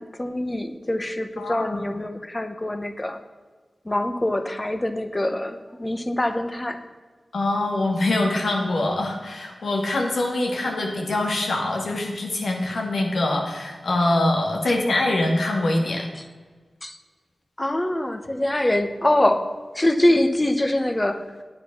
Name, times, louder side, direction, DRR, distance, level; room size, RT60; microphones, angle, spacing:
voice 1, 0.0-3.2 3.8-6.8 14.7-14.8 16.8-17.0 17.6-19.5 19.7-21.2, left 1 dB, 20° left, 9 dB, 1.0 m, -24 dB
voice 2, 1.4-1.9 7.3-16.1, left 2 dB, 80° left, 1 dB, 2.1 m, -24 dB
9.2 x 9.0 x 5.8 m, 1.4 s
wide cardioid pair, 70°, 0 cm